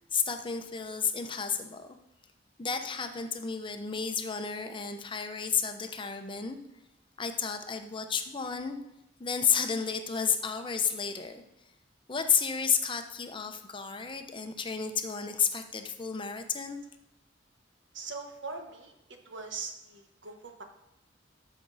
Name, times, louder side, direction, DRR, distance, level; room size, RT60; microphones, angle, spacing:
voice 1, 0.1-2.0 2.6-6.6 7.2-8.8 9.2-11.4 12.1-16.8, left 6 dB, 25° left, 7 dB, 0.8 m, -31 dB
voice 2, 17.9-18.9 19.2-20.6, right 4 dB, 85° right, 4 dB, 1.3 m, -41 dB
13.5 x 6.2 x 4.1 m, 0.88 s
head